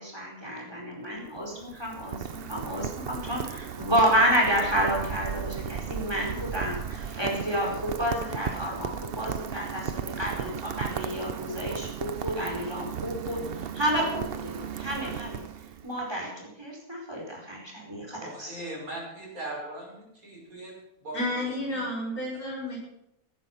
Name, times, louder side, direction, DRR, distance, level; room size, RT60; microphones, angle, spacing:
voice 1, 0.0-13.4 13.7-15.4 15.8-18.6, equal, 15° right, -1 dB, 4.7 m, -30 dB
Rain, 1.2-16.0, right 7 dB, 50° right, 0.8 m, -36 dB
voice 2, 18.2-20.7 21.0-21.8, right 1 dB, 65° right, -3 dB, 6.5 m, -39 dB
voice 3, 21.1-22.8, left 1 dB, 75° left, -4 dB, 6.1 m, -31 dB
16.0 x 11.0 x 5.9 m, 0.82 s
omnidirectional pair, 1.6 m